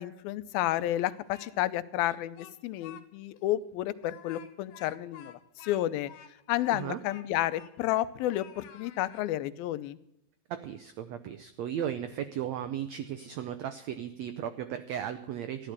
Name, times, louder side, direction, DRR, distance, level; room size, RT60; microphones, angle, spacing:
voice 1, 0.0-6.1 6.5-10.0, left 14 dB, 90° left, 14 dB, 2.6 m, -31 dB
Speech, 0.7-1.7 2.0-3.0 3.4-3.5 4.0-8.1 8.3-9.3, left 9 dB, 70° left, 2.7 m, -52 dB
voice 2, 6.7-7.0 10.5-15.7, right 10 dB, 85° right, 11 dB, 1.5 m, -36 dB
14.5 x 11.5 x 6.5 m, 0.79 s
omnidirectional pair, 4.1 m